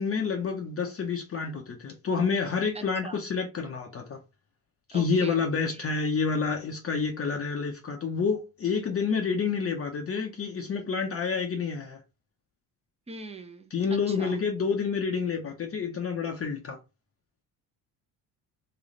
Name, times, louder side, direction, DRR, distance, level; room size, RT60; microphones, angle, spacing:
voice 1, 0.0-4.2 4.9-12.0 13.7-16.8, left 5 dB, 35° left, 0.9 m, -28 dB
voice 2, 2.7-3.2 4.9-5.4 5.7-5.9 13.1-13.7 14.1-14.4, right 2 dB, 15° right, 0.9 m, -42 dB
3.2 x 3.1 x 3.9 m
cardioid pair, 110°, 39 cm